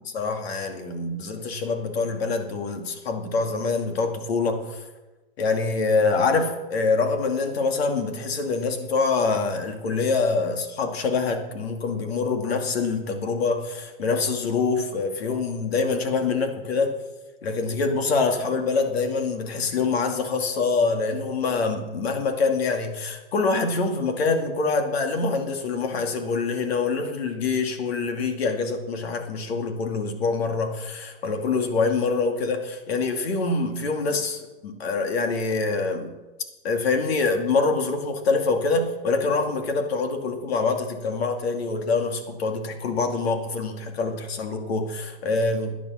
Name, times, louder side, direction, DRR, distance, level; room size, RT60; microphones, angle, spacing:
voice 1, 0.1-4.8 5.4-16.9 17.4-36.1 36.6-45.8, left 4 dB, 80° left, 4 dB, 2.4 m, -25 dB
14.0 x 10.0 x 6.3 m, 1.1 s
supercardioid pair, 165°, 31 cm